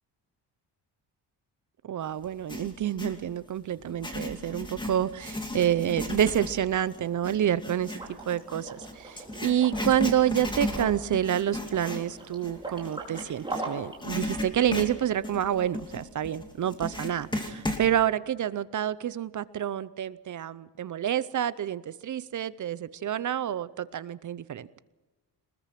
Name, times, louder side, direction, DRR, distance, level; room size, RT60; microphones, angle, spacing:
voice 1, 1.8-24.7, right 10 dB, 45° right, 17 dB, 0.7 m, -28 dB
Writing, 2.2-3.2 3.8-13.6 14.0-17.9, left 1 dB, 10° left, 2.6 m, -35 dB
Liquid, 7.9-14.0, right 2 dB, 10° right, 4.7 m, -41 dB
23.0 x 20.5 x 5.9 m, 1.1 s
cardioid pair, 155°, 42 cm